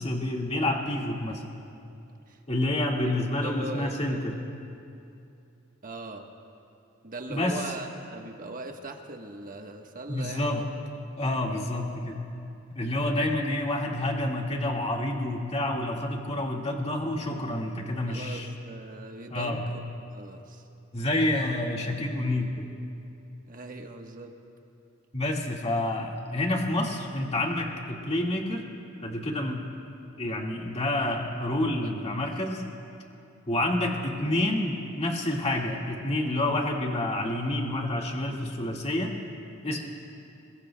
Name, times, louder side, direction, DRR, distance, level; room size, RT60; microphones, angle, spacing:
voice 1, 0.0-1.4 2.5-4.3 7.3-7.6 10.1-10.6 11.2-12.2 12.8-18.5 19.3-19.6 20.9-22.7 25.1-28.7 29.0-29.7 30.2-32.6 33.5-39.2 39.6-39.8, left 1 dB, 30° left, -1 dB, 2.0 m, -28 dB
voice 2, 2.3-2.7 3.4-4.3 5.8-6.3 7.0-10.6 11.5-11.7 18.0-19.8 20.1-20.6 23.5-24.3 31.8-31.9, right 2 dB, 40° right, 3 dB, 1.3 m, -40 dB
26.5 x 22.0 x 2.3 m, 2.7 s
head